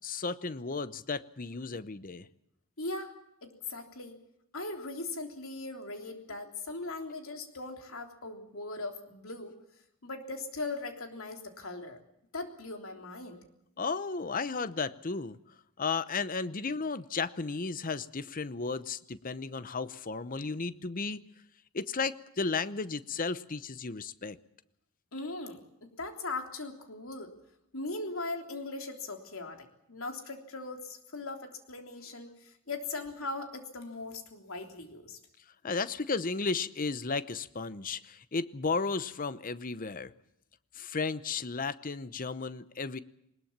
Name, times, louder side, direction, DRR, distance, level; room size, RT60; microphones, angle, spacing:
voice 1, 0.0-2.3 13.8-15.4 15.8-21.2 21.7-24.4 35.6-40.1 40.7-43.0, left 4 dB, 40° left, 15 dB, 0.8 m, -34 dB
voice 2, 2.8-3.1 3.4-4.2 4.5-9.6 10.0-12.0 12.3-13.4 25.1-27.3 27.7-35.2, left 3 dB, 65° left, 4 dB, 3.5 m, -39 dB
21.0 x 20.5 x 7.4 m, 0.80 s
head